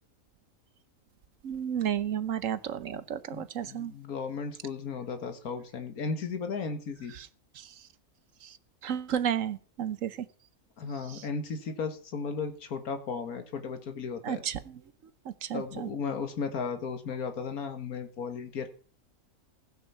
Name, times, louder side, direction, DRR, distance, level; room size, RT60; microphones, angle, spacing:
voice 1, 1.4-3.9 8.8-10.3 14.2-14.6 15.5-15.9, right 9 dB, 65° right, 1.1 m, -32 dB
voice 2, 3.3-7.1 10.8-14.4 15.5-18.7, left 5 dB, 75° left, 2.0 m, -35 dB
16.5 x 9.3 x 5.7 m
omnidirectional pair, 1.6 m